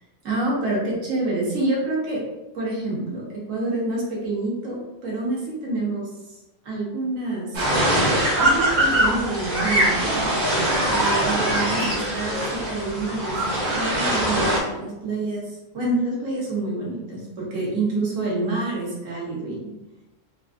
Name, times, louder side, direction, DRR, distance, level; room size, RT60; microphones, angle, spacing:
voice 1, 0.2-2.2 2.5-6.4 6.6-7.6 8.4-10.2 10.8-13.4 13.7-19.6, right 2 dB, 90° right, -4 dB, 1.3 m, -27 dB
sound 1, 7.5-14.6, right 1 dB, 45° right, 0.7 m, -22 dB
3.3 x 2.4 x 2.4 m, 1.0 s
omnidirectional pair, 1.3 m